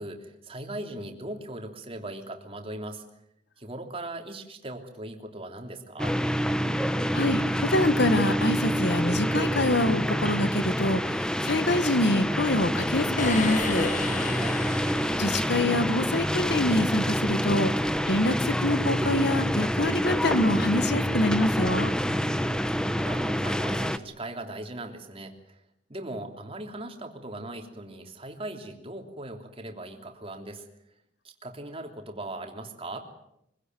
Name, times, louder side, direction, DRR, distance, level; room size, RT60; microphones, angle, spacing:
voice 1, 0.0-3.0 3.6-6.2 14.0-14.6 22.0-22.5 23.0-25.6 25.9-30.7 31.2-33.1, right 1 dB, 30° right, 4 dB, 3.2 m, -39 dB
sound 1, 6.0-24.0, equal, 5° left, 1.0 m, -27 dB
voice 2, 7.1-13.9 15.2-17.8 18.1-21.9, left 1 dB, 65° left, 12 dB, 1.7 m, -25 dB
sound 2, 13.2-16.0, left 4 dB, 45° left, 1.9 m, -35 dB
24.5 x 17.0 x 9.4 m, 0.79 s
head